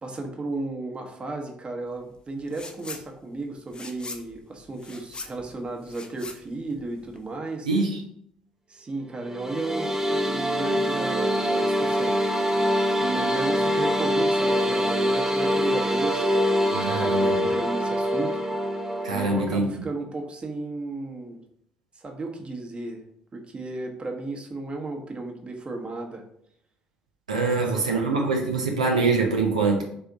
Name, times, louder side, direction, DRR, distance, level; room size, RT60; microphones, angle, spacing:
voice 1, 0.0-7.7 8.7-12.2 13.0-18.4 19.1-21.4 21.9-23.0 23.3-26.2 27.4-27.6 27.9-28.1, right 2 dB, 30° right, 2 dB, 1.0 m, -34 dB
sound 1, 2.5-3.1 3.4-7.3, left 3 dB, 25° left, 0.7 m, -41 dB
voice 2, 7.6-8.0 16.7-17.5 19.0-19.9 27.3-29.8, right 3 dB, 85° right, 0 dB, 0.5 m, -24 dB
sound 2, 9.2-19.4, equal, 10° right, 0.6 m, -24 dB
3.5 x 3.4 x 3.9 m, 0.70 s
figure-of-eight pair, 50°, 4 cm